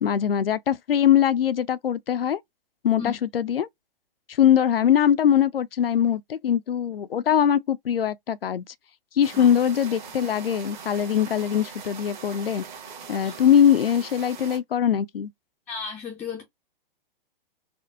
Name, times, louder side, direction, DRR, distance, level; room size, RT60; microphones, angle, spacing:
voice 1, 0.0-2.4 2.8-3.7 4.4-8.6 9.2-12.6 13.1-15.3, left 9 dB, 80° left, 0.5 m, -22 dB
sound 1, 9.2-14.6, right 6 dB, 50° right, 1.4 m, -41 dB
voice 2, 15.7-16.4, left 6 dB, 5° left, 0.4 m, -34 dB
4.2 x 2.0 x 2.4 m
figure-of-eight pair, 120°, 29 cm